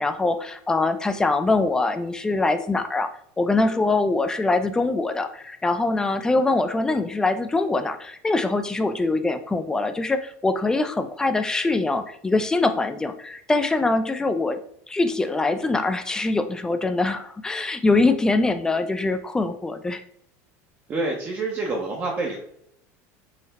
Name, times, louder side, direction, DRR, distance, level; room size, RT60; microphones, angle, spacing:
voice 1, 0.0-3.1 3.4-14.6 14.9-20.0, left 3 dB, 10° left, 9 dB, 0.3 m, -23 dB
voice 2, 20.9-22.4, right 3 dB, 30° right, -1 dB, 0.6 m, -27 dB
4.0 x 2.0 x 4.0 m, 0.70 s
supercardioid pair, 135°, 7 cm